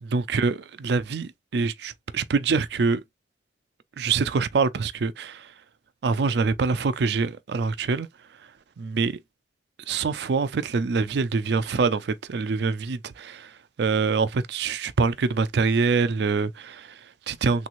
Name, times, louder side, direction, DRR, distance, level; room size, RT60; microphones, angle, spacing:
voice 1, 0.0-3.0 4.0-5.5 6.0-8.1 8.8-9.2 9.9-17.7, right 4 dB, 65° right, 0.4 m, -25 dB
3.4 x 3.0 x 2.4 m
head